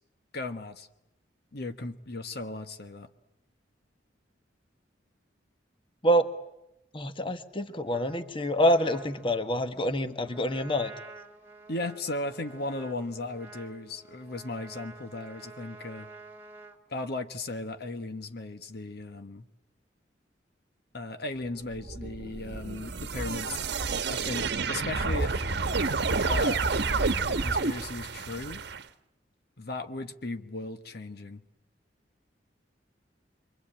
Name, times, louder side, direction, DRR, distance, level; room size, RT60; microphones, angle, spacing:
voice 1, 0.3-0.9 1.5-3.1 11.7-16.1 16.9-19.4 20.9-23.6 24.1-25.4 26.2-26.6 27.0-28.6 29.6-31.4, left 2 dB, 60° left, 8 dB, 1.4 m, -36 dB
voice 2, 6.9-10.9, equal, 30° left, 9 dB, 1.4 m, -26 dB
Trumpet, 7.9-16.8, right 2 dB, 15° right, 2.5 m, -49 dB
sound 1, 21.7-28.8, right 4 dB, 65° right, 1.1 m, -29 dB
27.5 x 23.5 x 8.9 m, 0.87 s
head